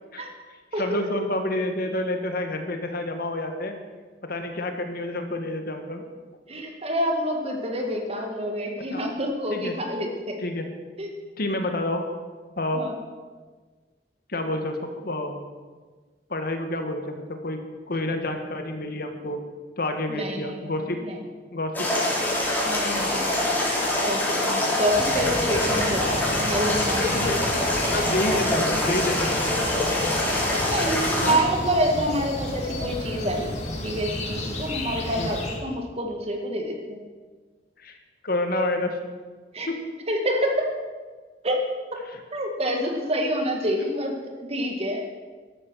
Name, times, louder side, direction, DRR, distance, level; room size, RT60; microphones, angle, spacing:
voice 1, 0.8-3.8 4.2-6.0 8.9-9.0 9.5-9.7 10.4-10.7 11.4-12.0 12.6-12.8 14.3-14.8 15.0-15.5 16.3-17.6 17.9-19.4 19.8-21.0 21.5-21.9 27.1-27.5 27.9-29.6 31.2-31.4 35.2-35.3 37.8-38.0 38.2-39.0 39.7-39.8 42.1-42.2, left 1 dB, 55° left, 5 dB, 1.7 m, -28 dB
voice 2, 6.5-10.4 11.0-11.1 12.7-13.0 20.1-20.7 21.0-21.2 22.6-23.3 24.0-26.0 26.3-27.6 30.6-33.5 33.8-37.0 39.5-39.7 40.1-40.7 41.4-41.7 41.9-42.0 42.3-45.1, equal, 35° right, 3 dB, 2.1 m, -27 dB
sound 1, 21.7-31.3, left 1 dB, 10° left, 4.5 m, -24 dB
sound 2, 24.8-35.6, left 1 dB, 40° left, 2.5 m, -32 dB
14.0 x 12.0 x 6.3 m, 1.4 s
head